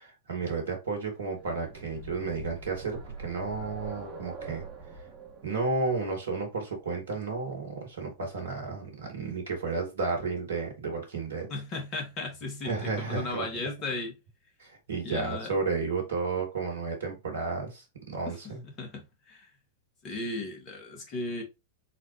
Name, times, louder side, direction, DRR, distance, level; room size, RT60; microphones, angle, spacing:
voice 1, 0.0-4.7 5.4-11.5 12.6-13.5 14.6-18.6, right 4 dB, 70° right, 1.9 m, -32 dB
sound 1, 1.2-9.0 10.1-10.2 10.6-10.7, right 3 dB, 30° right, 1.5 m, -44 dB
voice 2, 11.5-14.1 15.0-15.5 18.3-18.4 18.6-19.5 20.0-21.4, left 2 dB, 35° left, 1.8 m, -36 dB
4.2 x 4.0 x 3.1 m
figure-of-eight pair, 95°, 0 cm